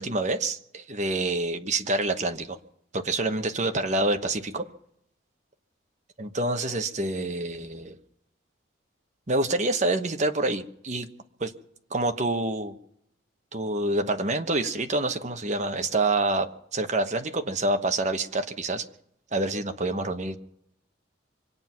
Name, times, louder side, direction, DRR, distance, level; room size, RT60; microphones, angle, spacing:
voice 1, 0.0-2.6 2.9-4.7 6.2-8.0 9.3-11.1 11.4-11.5 11.9-12.8 13.5-18.8 19.3-20.4, right 2 dB, 35° right, 7 dB, 1.1 m, -27 dB
25.0 x 9.5 x 5.9 m, 0.73 s
head